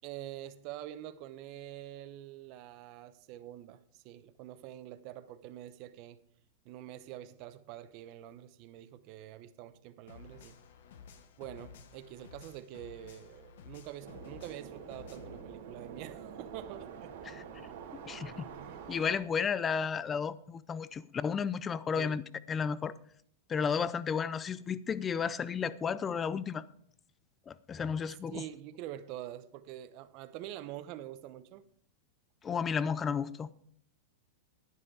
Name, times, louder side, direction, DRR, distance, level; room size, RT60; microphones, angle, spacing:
voice 1, 0.0-6.2 6.6-10.6 11.4-17.4 18.5-18.9 21.9-22.2 28.3-31.6, right 12 dB, 50° right, 0.9 m, -46 dB
sound 1, 10.1-15.4, left 6 dB, 75° left, 1.2 m, -53 dB
sound 2, 14.0-19.2, right 7 dB, 75° right, 2.5 m, -47 dB
voice 2, 17.3-18.5 18.9-22.2 22.5-22.9 23.5-26.7 27.5-28.4 32.4-33.5, left 6 dB, 20° left, 0.5 m, -33 dB
11.0 x 9.7 x 4.8 m
hypercardioid pair, 125°, 0 cm